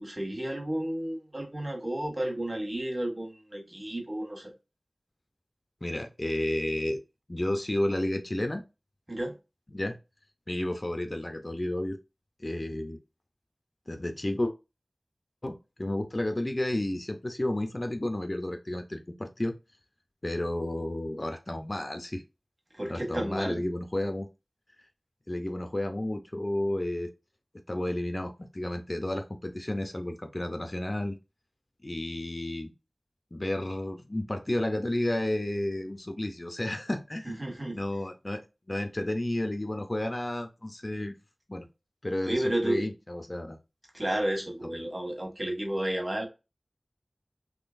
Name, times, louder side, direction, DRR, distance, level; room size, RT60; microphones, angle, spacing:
voice 1, 0.0-4.5 9.1-9.4 22.7-23.6 37.2-37.8 42.2-42.9 43.9-46.3, right 1 dB, 30° right, 1 dB, 1.4 m, -32 dB
voice 2, 5.8-7.0 7.3-8.6 9.7-10.0 10.5-12.0 12.4-13.0 13.9-14.5 15.4-19.5 20.2-22.2 22.9-24.3 25.3-27.1 27.7-31.2 31.8-32.7 33.3-37.4 37.7-38.4 38.7-41.1 41.5-41.7 42.0-43.6, left 1 dB, 35° left, 6 dB, 0.5 m, -31 dB
3.7 x 3.1 x 2.5 m, 0.27 s
wide cardioid pair, 60°, 0 cm